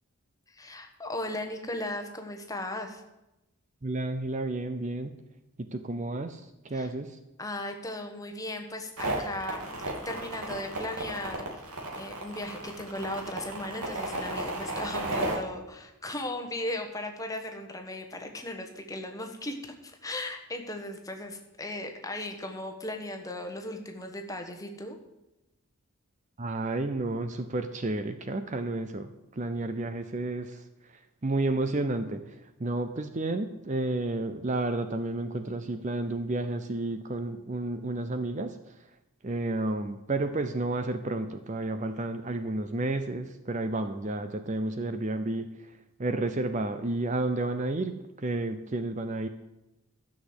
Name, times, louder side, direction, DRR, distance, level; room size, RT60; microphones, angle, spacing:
voice 1, 0.5-3.0 6.7-6.9 7.4-9.7 10.0-11.6 11.9-19.6 19.8-25.0, left 1 dB, 15° left, 4 dB, 1.3 m, -37 dB
voice 2, 3.8-5.2 5.6-7.2 26.4-29.1 29.4-30.6 31.2-32.2 32.6-38.6 39.2-45.5 46.0-49.3, right 2 dB, 35° right, 9 dB, 0.6 m, -31 dB
sound 1, 9.0-15.3, right 2 dB, 90° right, 2.7 m, -34 dB
12.5 x 6.4 x 8.1 m, 0.94 s
head